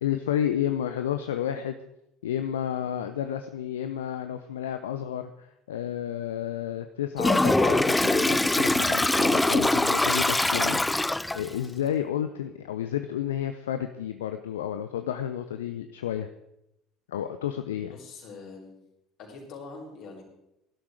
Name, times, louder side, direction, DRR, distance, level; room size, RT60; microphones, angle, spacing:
voice 1, 0.0-1.8 2.2-10.8 11.3-16.3 17.1-17.9, left 10 dB, 75° left, 9 dB, 0.7 m, -31 dB
Toilet flush, 7.2-11.5, left 2 dB, 10° left, 0.4 m, -23 dB
voice 2, 17.8-18.8 19.2-20.2, left 3 dB, 55° left, -1 dB, 5.2 m, -43 dB
17.0 x 12.0 x 4.8 m, 0.84 s
figure-of-eight pair, 65°, 0 cm